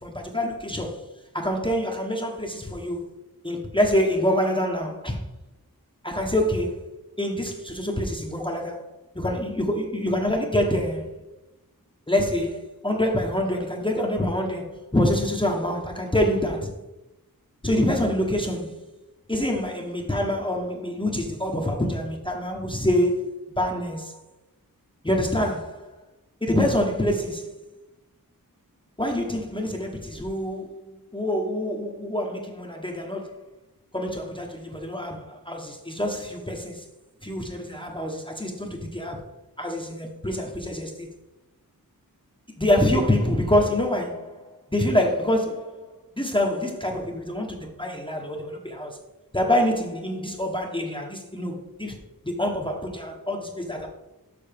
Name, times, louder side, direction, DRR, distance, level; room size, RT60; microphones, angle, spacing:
voice 1, 0.0-1.0 1.3-3.0 3.4-5.2 6.0-6.8 7.2-8.8 9.1-11.2 12.1-16.7 17.6-18.8 19.3-23.2 23.6-24.2 25.0-25.9 26.4-27.6 29.0-33.4 33.9-36.8 37.2-39.2 39.6-41.1 42.6-44.4 44.7-45.9 46.2-49.0 49.3-52.0 52.2-53.9, left 1 dB, 15° left, 0.9 m, -26 dB
6.7 x 6.7 x 3.4 m
wide cardioid pair, 40°, 35 cm